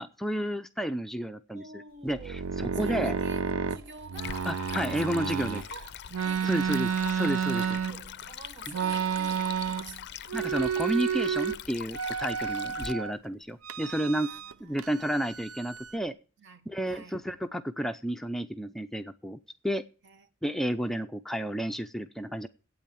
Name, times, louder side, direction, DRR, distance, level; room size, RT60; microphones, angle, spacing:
voice 1, 0.0-3.2 4.5-5.6 6.4-7.6 10.3-14.3 14.6-16.2 16.7-19.4 19.6-19.8 20.4-22.5, equal, ahead, 0.5 m, -31 dB
voice 2, 1.5-10.7 12.4-12.8 13.8-15.2 16.4-17.2 20.0-20.8, right 3 dB, 60° right, 1.3 m, -49 dB
sound 1, 2.1-5.7 6.1-8.2 8.7-10.0 10.3-11.6 11.9-13.1 13.6-14.5 14.8-16.0, right 7 dB, 75° right, 0.6 m, -31 dB
Stream, 4.1-12.9, left 9 dB, 55° left, 0.5 m, -42 dB
8.8 x 8.4 x 8.9 m
head